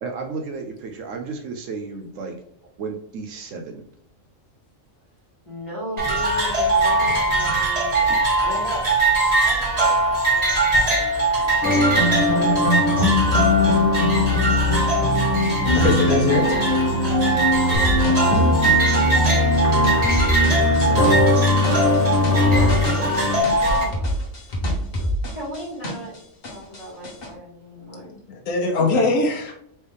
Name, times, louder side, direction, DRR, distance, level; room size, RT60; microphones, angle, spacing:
voice 1, 0.0-2.4 2.8-3.8 28.8-29.1, right 4 dB, 80° right, 3 dB, 1.0 m, -32 dB
voice 2, 5.4-8.0 8.4-9.0 9.4-12.2 14.6-15.6 17.6-18.3 22.4-24.1 24.6-26.1 26.4-28.2, equal, 25° left, -8 dB, 1.6 m, -37 dB
sound 1, 6.0-23.8, right 2 dB, 30° right, 1.3 m, -21 dB
sound 2, 11.6-23.4, left 1 dB, 70° left, 1.5 m, -20 dB
voice 3, 15.7-16.7 20.7-21.1 28.5-29.6, left 3 dB, 90° left, 1 dB, 1.3 m, -21 dB
sound 3, 17.7-26.2 26.4-27.3, equal, 50° left, 1.3 m, -27 dB
4.4 x 3.2 x 3.3 m, 0.68 s
omnidirectional pair, 1.3 m